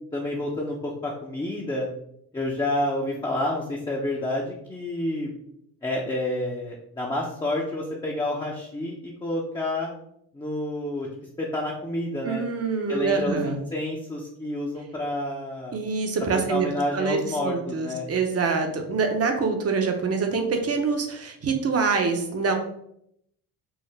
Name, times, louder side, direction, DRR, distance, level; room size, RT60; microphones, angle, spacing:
voice 1, 0.1-1.9 2.3-5.3 5.8-9.9 10.3-11.1 11.4-12.5 12.9-15.8 16.3-18.1, left 1 dB, 10° left, -3 dB, 0.7 m, -29 dB
voice 2, 12.2-13.6 15.7-16.7 16.9-22.5, right 4 dB, 35° right, 4 dB, 0.8 m, -25 dB
4.7 x 2.1 x 3.3 m, 0.74 s
supercardioid pair, 70°, 42 cm